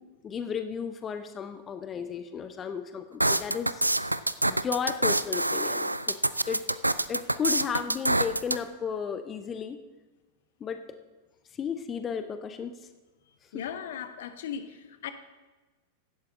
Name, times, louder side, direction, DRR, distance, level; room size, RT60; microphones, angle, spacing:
voice 1, 0.2-3.8 4.5-6.2 6.5-6.6 7.1-9.8 10.6-10.8 11.5-12.9 13.4-13.5, left 7 dB, 25° left, 9 dB, 0.8 m, -34 dB
sound 1, 3.2-8.6, right 1 dB, 85° right, 0.4 m, -26 dB
voice 2, 13.5-15.1, left 8 dB, 60° left, 10 dB, 1.0 m, -37 dB
16.0 x 11.5 x 3.7 m, 1.2 s
figure-of-eight pair, 90°, 0 cm